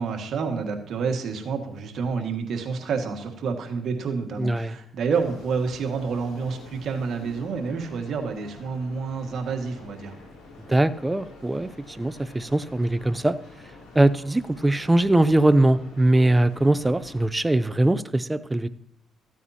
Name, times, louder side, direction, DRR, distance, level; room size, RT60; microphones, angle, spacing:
voice 1, 0.0-10.2, right 5 dB, 65° right, 4 dB, 1.9 m, -29 dB
voice 2, 4.4-4.7 10.7-11.7 12.0-13.4 13.9-18.7, right 1 dB, 15° right, 14 dB, 0.5 m, -21 dB
sound 1, 5.1-17.2, left 2 dB, 85° left, 3.5 m, -47 dB
14.5 x 9.2 x 2.8 m, 0.71 s
cardioid pair, 90°, 0 cm